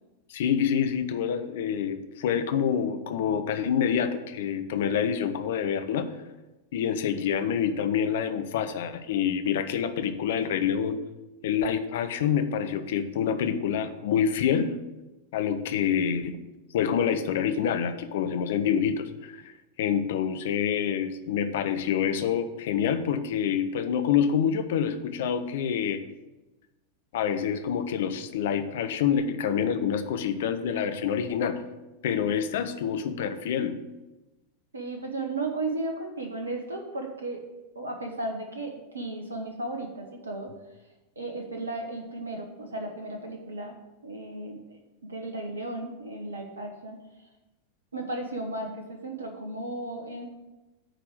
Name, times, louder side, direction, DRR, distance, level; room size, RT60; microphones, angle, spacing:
voice 1, 0.3-6.1 6.7-11.0 11.4-14.8 15.3-16.4 16.7-19.5 19.8-26.0 27.1-31.6 32.0-33.8, left 8 dB, 55° left, 9 dB, 0.8 m, -27 dB
voice 2, 34.7-37.4 37.7-40.5 41.2-43.8 44.0-47.3 47.9-50.3, right 2 dB, 75° right, 3 dB, 1.1 m, -35 dB
8.9 x 4.8 x 7.7 m, 1.1 s
figure-of-eight pair, 90°, 0 cm